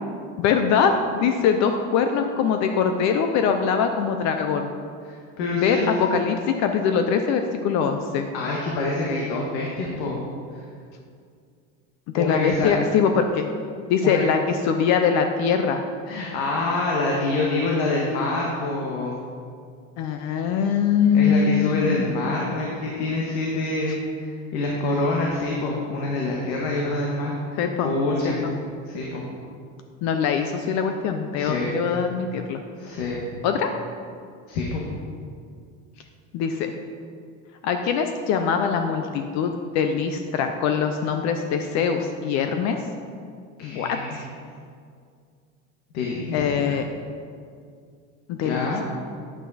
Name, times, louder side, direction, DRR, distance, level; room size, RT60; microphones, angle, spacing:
voice 1, 0.4-4.7 5.5-8.3 12.1-13.5 13.9-15.8 20.0-22.1 27.6-27.9 28.2-28.5 30.0-32.6 33.4-33.7 36.3-36.7 37.6-42.8 43.6-44.2 46.3-46.9 48.3-48.7, left 6 dB, 55° left, 6 dB, 0.6 m, -23 dB
voice 2, 5.0-5.9 8.3-10.2 12.2-12.8 14.0-14.2 16.1-19.1 21.1-28.4 28.9-29.2 31.4-31.7 32.8-33.2 34.5-34.8 43.6-44.2 45.9-46.7 48.4-48.8, left 2 dB, 85° left, -2 dB, 1.5 m, -26 dB
9.5 x 8.1 x 4.1 m, 2.2 s
cardioid pair, 155°, 33 cm